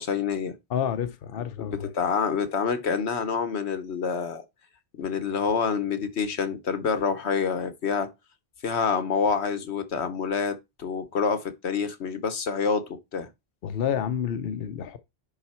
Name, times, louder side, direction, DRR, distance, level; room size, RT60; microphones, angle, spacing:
voice 1, 0.0-0.6 1.6-4.4 5.0-8.1 8.6-13.3, left 6 dB, 85° left, 1.3 m, -27 dB
voice 2, 0.7-1.9 13.6-15.0, left 8 dB, 65° left, 0.9 m, -29 dB
10.5 x 4.0 x 4.3 m
omnidirectional pair, 1.1 m